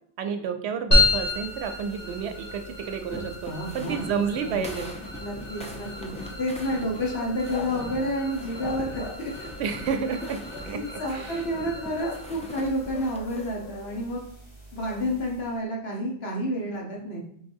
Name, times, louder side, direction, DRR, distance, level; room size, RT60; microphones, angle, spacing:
voice 1, 0.2-4.9 9.6-11.4, right 6 dB, 80° right, 7 dB, 0.9 m, -30 dB
sound 1, 0.9-15.6, left 2 dB, 40° left, 1.9 m, -32 dB
sound 2, 3.1-13.5, left 1 dB, 10° left, 0.3 m, -42 dB
voice 2, 3.4-4.6 5.2-6.1 6.4-9.5 10.7-14.2 14.7-17.2, equal, 70° left, -2 dB, 1.4 m, -30 dB
sound 3, 7.2-9.6 10.2-11.1 11.7-12.3 12.6-14.0 14.8-15.1, left 6 dB, 85° left, 0.9 m, -41 dB
4.7 x 4.0 x 2.6 m, 0.66 s
omnidirectional pair, 1.1 m